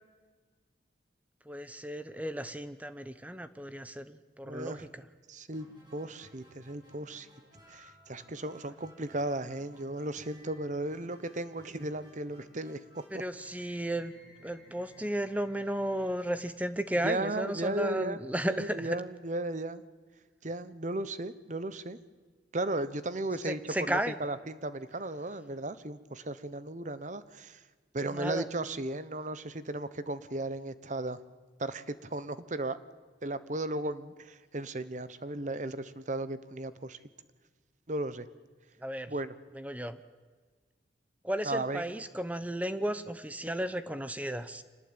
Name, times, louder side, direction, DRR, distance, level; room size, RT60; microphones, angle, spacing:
voice 1, 1.5-5.0 13.1-14.1 14.4-19.0 23.4-24.2 28.1-28.5 38.8-39.1 39.5-40.0 41.2-44.6, right 1 dB, 10° right, 12 dB, 0.9 m, -34 dB
voice 2, 4.5-4.9 5.3-5.7 5.9-7.3 7.7-12.8 17.0-18.2 18.5-19.8 20.4-22.0 22.5-27.6 27.9-31.2 31.6-32.8 33.2-37.0 37.9-38.3 39.1-39.3 41.4-41.9, right 2 dB, 40° right, 14 dB, 1.1 m, -35 dB
sound 1, 5.5-17.4, equal, 25° right, 6.8 m, -59 dB
26.0 x 19.5 x 8.9 m, 1.4 s
head